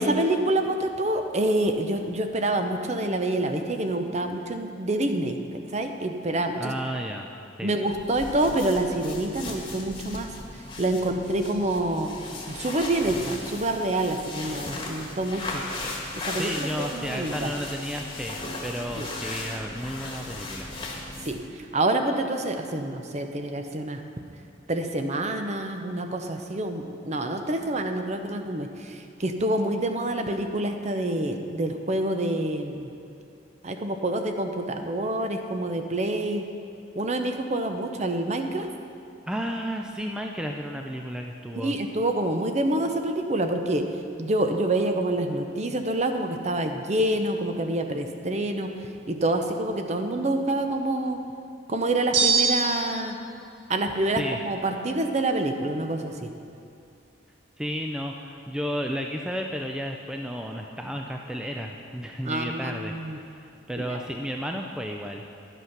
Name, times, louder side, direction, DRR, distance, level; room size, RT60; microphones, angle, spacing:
voice 1, 0.0-6.7 7.6-10.3 10.8-12.1 12.5-15.6 16.3-17.5 19.0-19.1 21.2-21.4 21.7-24.0 24.7-32.9 33.6-36.4 37.0-38.7 41.6-43.8 44.2-48.7 49.1-51.2 51.7-53.2 53.7-56.3 62.2-63.2 63.8-64.0, right 1 dB, 35° right, 6 dB, 0.7 m, -27 dB
voice 2, 6.6-7.3 7.6-7.8 16.4-20.7 39.3-41.8 54.2-54.4 57.6-65.2, equal, 5° right, 2 dB, 0.4 m, -33 dB
sound 1, 7.9-21.5, left 2 dB, 25° left, 1.4 m, -37 dB
sound 2, 52.1-53.1, right 5 dB, 65° right, 1.7 m, -23 dB
11.5 x 8.1 x 5.9 m, 2.6 s
head